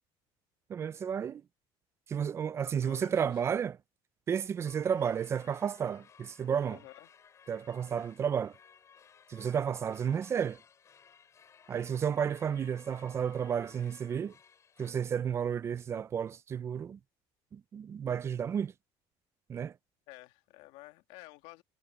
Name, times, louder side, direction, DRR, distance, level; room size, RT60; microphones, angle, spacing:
voice 1, 0.7-1.4 2.1-3.8 4.3-6.8 7.5-8.5 9.3-10.6 11.7-14.3 14.8-17.0 17.5-18.7 19.5-19.7, right 7 dB, 25° right, 0.4 m, -32 dB
voice 2, 2.6-3.4 6.7-7.1 20.1-21.6, left 19 dB, 90° left, 2.3 m, -52 dB
sound 1, 4.6-14.9, left 7 dB, 25° left, 4.2 m, -59 dB
cardioid pair, 165°, 11 cm